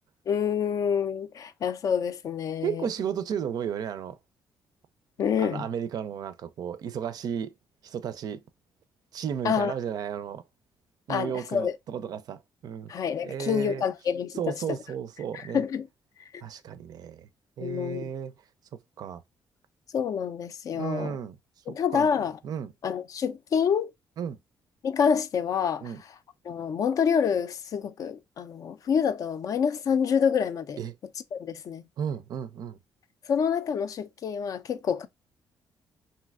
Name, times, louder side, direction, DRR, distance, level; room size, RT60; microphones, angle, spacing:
voice 1, 0.3-2.9 5.2-5.7 9.4-9.7 11.1-11.7 12.9-14.5 15.3-15.9 17.6-18.1 19.9-21.2 21.7-22.4 22.8-23.9 24.8-25.9 26.4-30.8 31.3-31.8 33.3-35.1, left 7 dB, 50° left, 0.3 m, -27 dB
voice 2, 2.6-4.2 5.4-7.5 7.8-8.4 9.1-10.4 11.1-12.9 13.2-13.8 14.4-15.6 16.4-17.3 17.6-18.3 19.0-19.2 20.7-21.4 21.7-22.7 24.2-24.4 25.8-26.0 30.8-30.9 32.0-32.8, right 8 dB, 60° right, 0.4 m, -33 dB
3.2 x 2.7 x 2.3 m
cardioid pair, 130°, 8 cm